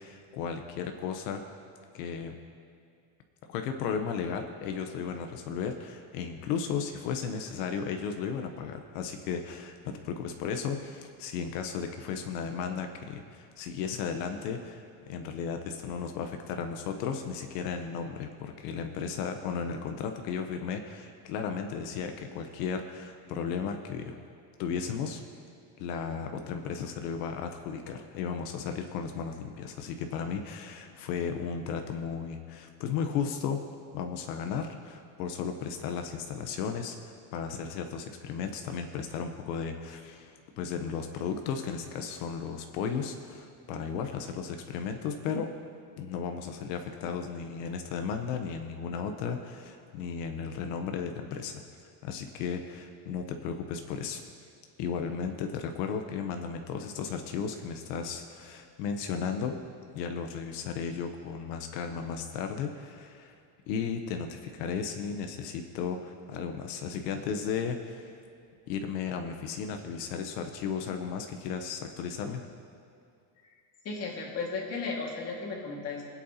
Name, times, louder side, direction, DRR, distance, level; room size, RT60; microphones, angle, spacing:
voice 1, 0.0-1.4 1.9-2.3 3.5-24.2 24.6-25.2 25.8-33.6 33.9-45.5 46.0-51.6 52.0-54.2 54.8-59.6 59.9-63.4 63.7-68.1 68.7-72.5, left 6 dB, 90° left, 5 dB, 1.0 m, -35 dB
voice 2, 73.8-76.0, left 4 dB, 30° left, -1 dB, 2.0 m, -35 dB
23.5 x 8.4 x 2.9 m, 2.4 s
cardioid pair, 160°, 47 cm